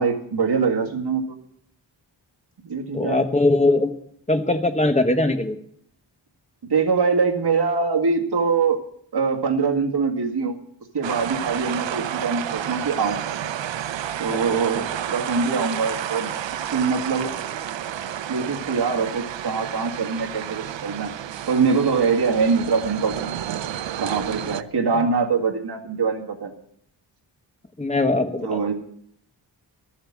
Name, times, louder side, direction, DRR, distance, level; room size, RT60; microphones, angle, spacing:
voice 1, 0.0-1.4 2.6-3.2 6.7-8.8 9.1-10.6 10.9-13.2 14.2-16.3 16.7-17.3 18.3-21.1 21.5-23.3 24.0-26.5 28.4-28.7, right 5 dB, 65° right, 1 dB, 2.1 m, -23 dB
voice 2, 2.9-3.9 4.3-5.6 14.3-14.4 14.7-14.8 27.8-28.7, left 2 dB, 15° left, 6 dB, 1.3 m, -21 dB
sound 1, 11.0-24.6, right 10 dB, 85° right, 0.6 m, -31 dB
14.0 x 7.2 x 8.6 m, 0.64 s
wide cardioid pair, 130°, 43 cm